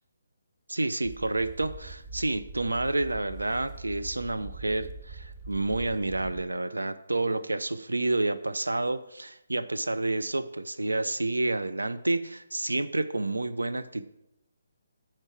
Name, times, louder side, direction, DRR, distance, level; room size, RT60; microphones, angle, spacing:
voice 1, 0.7-14.1, right 2 dB, 80° right, 10 dB, 0.6 m, -29 dB
sound 1, 1.0-6.4, right 2 dB, 25° right, 0.9 m, -43 dB
9.8 x 4.5 x 5.9 m, 0.84 s
figure-of-eight pair, 140°, 0 cm